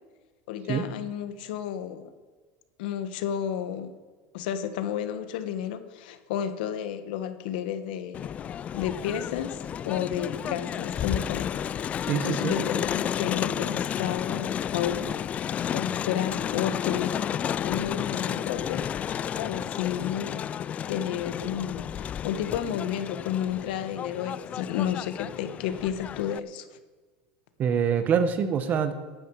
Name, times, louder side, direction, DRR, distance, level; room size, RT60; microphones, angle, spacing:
voice 1, 0.5-2.1 2.8-3.9 4.3-8.3 8.7-11.9 12.3-15.1 15.7-17.2 17.6-18.8 19.4-20.5 20.9-26.7, left 10 dB, 80° left, 11 dB, 1.4 m, -31 dB
Crowd, 8.1-26.4, left 9 dB, 30° left, 0.3 m, -32 dB
voice 2, 12.1-12.6 27.6-28.9, right 7 dB, 35° right, 10 dB, 1.4 m, -25 dB
15.0 x 11.5 x 4.9 m, 1.4 s
supercardioid pair, 145°, 5 cm